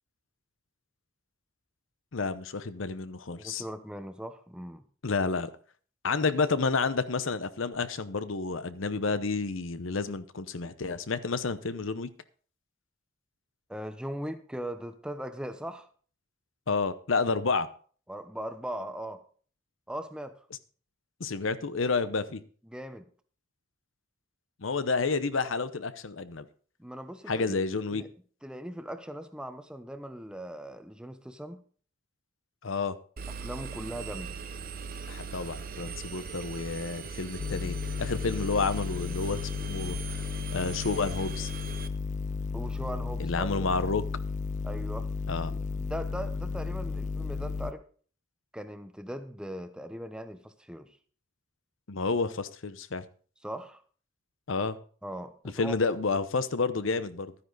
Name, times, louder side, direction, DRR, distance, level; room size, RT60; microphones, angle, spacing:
voice 1, 2.1-3.6 5.0-5.5 6.0-12.1 16.7-17.7 21.2-22.4 24.6-26.4 27.3-28.0 32.6-33.0 35.1-40.2 40.5-41.5 43.2-44.0 45.3-45.5 51.9-53.0 54.5-54.8 55.6-57.3, left 4 dB, 70° left, 0.8 m, -30 dB
voice 2, 3.3-4.8 13.7-15.9 18.1-19.3 19.9-20.4 22.7-23.1 26.8-27.6 27.9-28.1 28.4-31.6 33.3-34.4 42.5-43.6 44.6-45.1 45.5-47.9 48.5-51.0 53.4-53.8 55.0-55.8, equal, 5° right, 0.8 m, -39 dB
Engine, 33.2-41.9, right 5 dB, 45° right, 0.8 m, -40 dB
sound 1, 37.4-47.7, left 4 dB, 35° left, 0.5 m, -33 dB
12.5 x 9.8 x 4.0 m
head